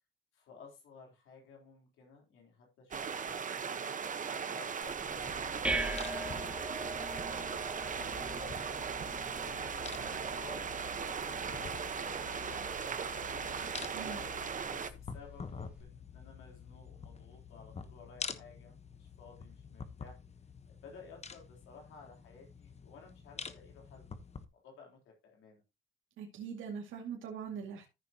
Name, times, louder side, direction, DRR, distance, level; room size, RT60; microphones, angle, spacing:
voice 1, 0.3-4.0 4.5-8.9 9.5-13.7 14.0-20.2 20.8-24.1 24.5-25.0 25.2-25.6, left 4 dB, 85° left, 3.7 m, -55 dB
sound 1, 2.9-14.9, right 6 dB, 40° right, 1.1 m, -38 dB
sound 2, 4.8-15.8, right 2 dB, 5° right, 2.1 m, -43 dB
sound 3, 4.9-24.4, left 6 dB, 35° left, 1.1 m, -48 dB
voice 2, 26.2-27.9, right 7 dB, 85° right, 2.4 m, -42 dB
14.0 x 6.8 x 2.9 m
cardioid pair, 90°, 20 cm